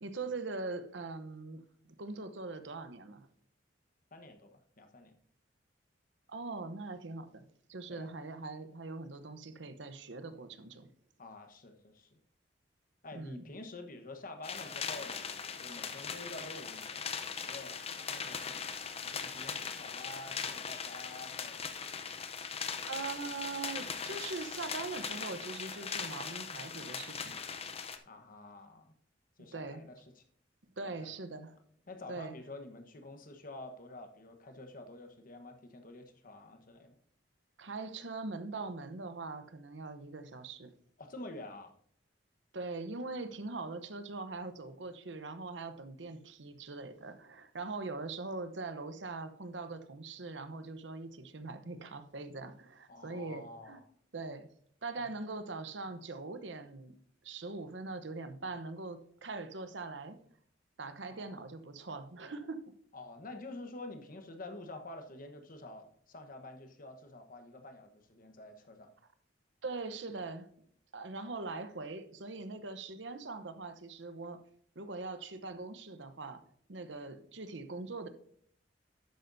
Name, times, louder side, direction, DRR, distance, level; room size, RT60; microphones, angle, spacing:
voice 1, 0.0-3.3 6.3-7.4 7.7-10.9 13.1-13.4 22.8-27.4 29.5-29.9 30.8-31.5 32.1-32.4 37.6-40.7 42.5-53.8 54.1-54.5 54.8-56.9 57.2-60.2 60.8-62.6 69.6-70.5 70.9-74.4 74.8-76.4 76.7-78.1, right 3 dB, 75° right, 0.9 m, -42 dB
voice 2, 4.1-5.1 7.9-8.1 11.2-12.2 13.0-21.7 28.1-29.0 29.4-30.2 30.8-31.1 31.9-37.0 41.0-41.7 52.9-53.9 54.9-55.1 61.1-61.5 62.9-68.9, left 2 dB, 50° left, 1.2 m, -48 dB
sound 1, 14.4-28.0, left 6 dB, 35° left, 0.6 m, -40 dB
11.5 x 8.8 x 2.7 m
head